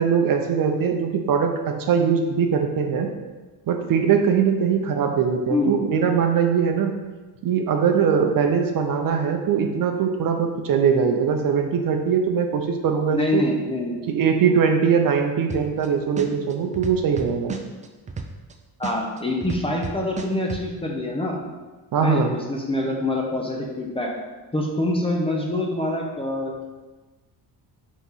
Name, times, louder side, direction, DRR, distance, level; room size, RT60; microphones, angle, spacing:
voice 1, 0.0-1.5 1.9-3.1 3.7-6.9 7.4-13.4 14.1-17.6 21.9-22.3, right 6 dB, 55° right, 4 dB, 0.7 m, -21 dB
voice 2, 13.1-14.0 18.8-21.4 22.0-24.1 24.5-26.6, left 1 dB, 15° left, -1 dB, 0.7 m, -25 dB
sound 1, 15.5-15.9 16.2-18.5 18.8-20.6, right 4 dB, 20° right, 0.3 m, -32 dB
5.7 x 3.1 x 5.5 m, 1.2 s
cardioid pair, 155°, 41 cm